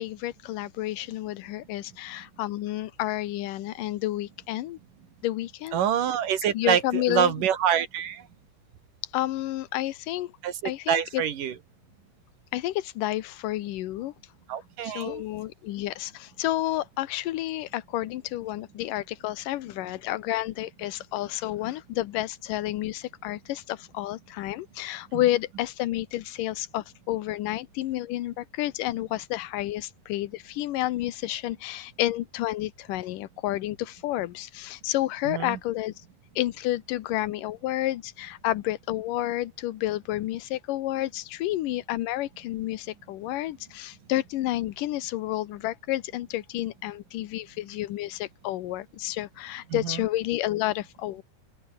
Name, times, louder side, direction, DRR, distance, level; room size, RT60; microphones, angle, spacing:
voice 1, 0.0-4.8 5.2-5.8 6.5-7.3 9.1-10.3 10.6-11.2 12.5-14.1 14.8-35.9 36.4-51.2, left 15 dB, 85° left, 2.6 m, -30 dB
voice 2, 5.7-8.3 10.4-11.6 14.5-15.2 25.1-25.3 35.2-35.6 49.7-50.1, right 9 dB, 85° right, 3.7 m, -26 dB
open air
omnidirectional pair, 3.7 m